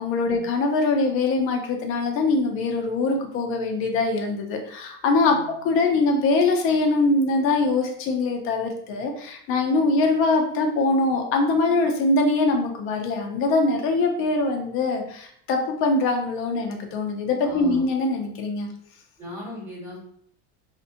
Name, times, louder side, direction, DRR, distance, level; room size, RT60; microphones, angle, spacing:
voice 1, 0.0-5.4 5.6-18.7, left 3 dB, 40° left, 3 dB, 0.4 m, -23 dB
voice 2, 17.4-17.9 19.2-20.0, left 1 dB, 5° right, -9 dB, 1.4 m, -37 dB
2.5 x 2.1 x 2.5 m, 0.65 s
cardioid pair, 170°, 35 cm